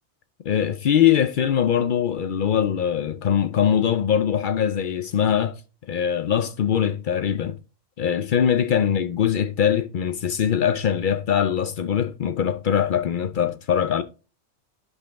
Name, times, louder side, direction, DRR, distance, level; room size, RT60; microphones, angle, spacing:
voice 1, 0.5-5.6 5.9-7.6 8.0-14.0, left 8 dB, 65° left, 0.5 m, -22 dB
11.0 x 5.4 x 3.4 m
omnidirectional pair, 1.3 m